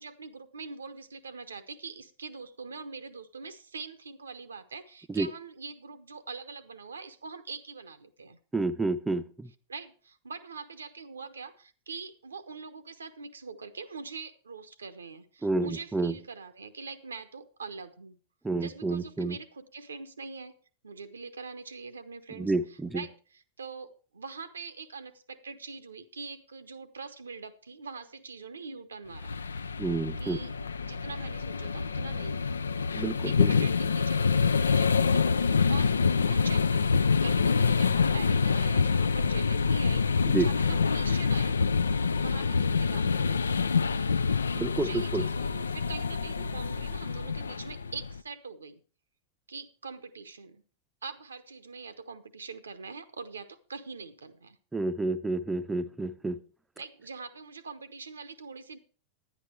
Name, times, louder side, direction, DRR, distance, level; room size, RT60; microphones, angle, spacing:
voice 1, 0.0-8.4 9.7-18.2 18.6-20.5 20.8-29.4 30.2-30.5 30.8-32.6 33.2-35.9 36.2-41.6 42.2-43.6 44.7-48.8 49.5-50.6 51.0-54.6 56.8-58.8, right 4 dB, 75° right, 11 dB, 0.9 m, -43 dB
voice 2, 8.5-9.5 15.4-16.2 18.4-19.4 22.4-23.0 29.8-30.4 32.9-33.7 40.3-40.5 44.5-45.2 54.7-56.4, right 3 dB, 10° right, 9 dB, 0.6 m, -29 dB
sound 1, 29.1-48.2, left 5 dB, 75° left, 0.4 m, -26 dB
10.5 x 10.0 x 4.6 m, 0.40 s
figure-of-eight pair, 90°, 0 cm